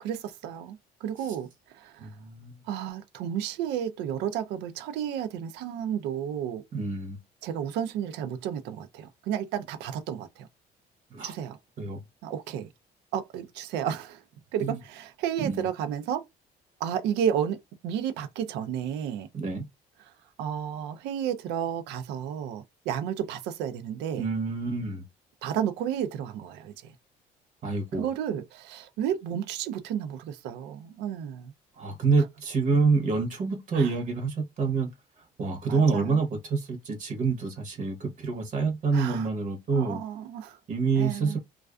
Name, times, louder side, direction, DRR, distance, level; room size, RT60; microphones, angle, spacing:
voice 1, 0.0-1.5 1.7-2.1 2.7-6.6 7.4-10.5 11.2-11.6 12.2-12.7 13.1-14.2 14.5-16.2 16.8-19.3 20.4-24.3 25.4-26.9 28.0-31.5 33.7-33.9 35.7-36.2 38.9-39.3 39.7-40.6 40.9-41.4, right 9 dB, 85° right, 0.4 m, -32 dB
voice 2, 2.0-2.5 6.7-7.2 11.1-11.3 11.8-12.0 14.6-14.8 15.4-15.7 19.3-19.7 24.2-25.0 27.6-28.1 31.8-34.9 35.4-40.0 40.7-41.4, right 4 dB, 50° right, 0.8 m, -27 dB
2.3 x 2.3 x 2.2 m
cardioid pair, 110°, 17 cm